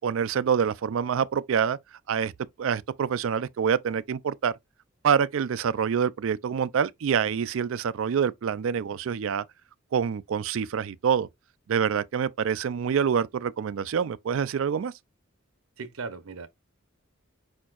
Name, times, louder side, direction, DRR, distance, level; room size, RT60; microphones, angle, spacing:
voice 1, 0.0-1.8 2.1-2.3 2.6-4.5 5.0-9.4 9.9-11.3 11.7-14.9, right 7 dB, 65° right, 0.4 m, -26 dB
voice 2, 15.8-16.5, right 4 dB, 90° right, 0.8 m, -37 dB
4.6 x 4.4 x 2.4 m
head